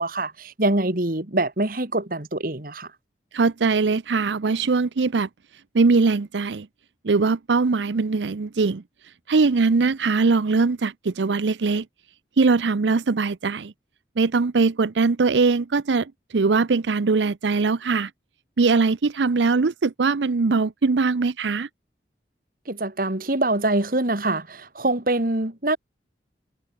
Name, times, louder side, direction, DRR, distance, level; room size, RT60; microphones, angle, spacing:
voice 1, 0.0-2.9 22.7-25.8, right 2 dB, 50° right, 2.2 m, -24 dB
voice 2, 3.3-5.3 5.7-6.7 7.0-11.9 12.4-13.7 14.2-18.1 18.6-21.7, right 4 dB, 90° right, 0.6 m, -21 dB
head